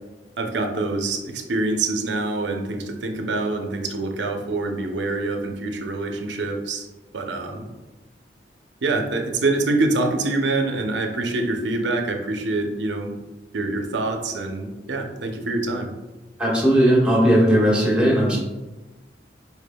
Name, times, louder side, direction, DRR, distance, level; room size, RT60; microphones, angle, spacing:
voice 1, 0.4-6.9 7.1-7.7 8.8-13.1 13.5-15.9, right 2 dB, 80° right, 3 dB, 0.6 m, -25 dB
voice 2, 16.4-18.4, equal, 5° right, -5 dB, 1.4 m, -17 dB
5.1 x 4.5 x 2.2 m, 1.1 s
head